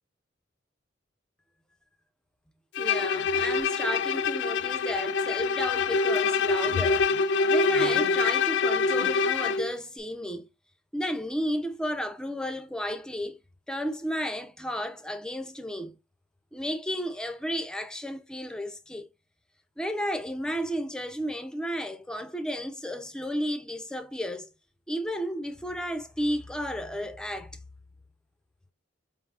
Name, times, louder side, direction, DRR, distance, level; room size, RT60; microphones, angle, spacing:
Bowed string instrument, 2.8-9.7, left 4 dB, 65° left, 0.3 m, -25 dB
voice 1, 2.8-10.5 10.9-13.4 13.7-16.0 16.5-19.1 19.8-24.5 24.9-27.6, equal, 5° left, 0.5 m, -33 dB
4.7 x 3.5 x 2.4 m
head